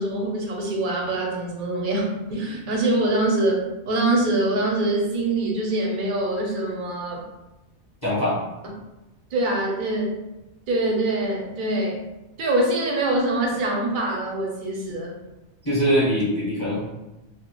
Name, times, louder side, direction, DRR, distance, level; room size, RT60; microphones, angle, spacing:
voice 1, 0.0-7.2 9.3-10.1 10.7-12.0 12.4-15.1, right 2 dB, 60° right, -1 dB, 0.6 m, -24 dB
voice 2, 8.0-8.4 15.6-16.8, equal, 20° left, -10 dB, 0.8 m, -22 dB
2.1 x 2.0 x 2.8 m, 1.0 s
omnidirectional pair, 1.2 m